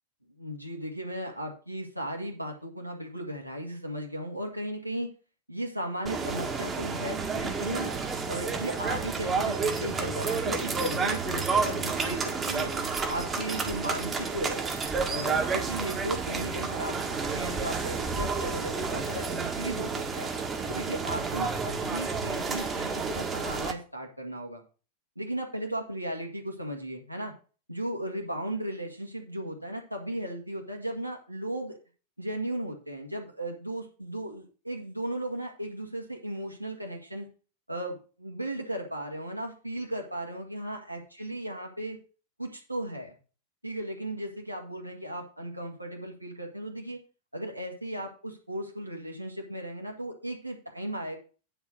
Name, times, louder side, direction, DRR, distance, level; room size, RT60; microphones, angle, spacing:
voice 1, 0.4-5.1 5.5-7.9 8.3-12.7 13.1-14.6 15.1-20.3 20.7-24.6 25.2-27.3 27.7-31.8 32.2-37.3 37.7-42.0 42.4-43.2 43.6-47.0 47.3-51.2, right 1 dB, 85° right, 1 dB, 2.0 m, -36 dB
sound 1, 6.1-23.7, right 4 dB, 20° right, 1.8 m, -30 dB
9.9 x 4.8 x 6.3 m, 0.36 s
figure-of-eight pair, 90°, 0 cm